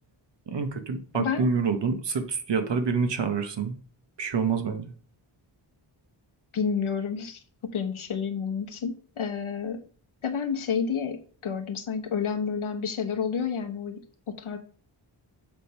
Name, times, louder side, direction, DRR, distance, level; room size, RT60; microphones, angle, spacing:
voice 1, 0.5-3.8 4.2-4.9, right 5 dB, 60° right, 1.2 m, -27 dB
voice 2, 6.5-7.4 7.7-9.8 10.2-14.6, left 6 dB, 85° left, 1.2 m, -30 dB
7.4 x 3.5 x 5.5 m
wide cardioid pair, 155°, 48 cm